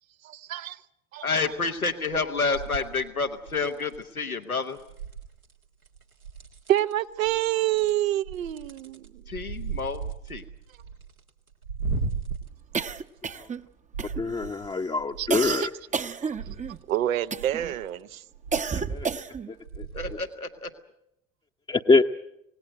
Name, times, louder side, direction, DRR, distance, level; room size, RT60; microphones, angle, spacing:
voice 1, 0.2-0.8 1.1-1.3 6.7-9.2 15.2-15.7 16.1-16.3 16.9-18.2, right 13 dB, 70° right, 14 dB, 0.9 m, -27 dB
voice 2, 1.2-4.8 9.3-10.4 19.9-20.7, left 4 dB, 90° left, 7 dB, 1.2 m, -29 dB
sound 1, 1.4-1.8 2.1-4.0 4.8-5.5 5.9-6.9 7.2-13.6 13.9-15.6 16.1-16.8 17.4-17.9 18.3-19.3 19.6-20.2 20.7-20.8, right 5 dB, 90° right, 1.7 m, -37 dB
sound 2, 12.7-13.7 14.0-14.5 15.3-16.8 17.3-17.7 18.5-19.5, right 5 dB, 20° right, 0.8 m, -31 dB
voice 3, 14.2-15.6 18.9-19.1 19.5-19.8 21.7-22.0, left 3 dB, 10° left, 1 dB, 0.8 m, -24 dB
26.5 x 18.5 x 7.7 m, 0.82 s
figure-of-eight pair, 60°, 42 cm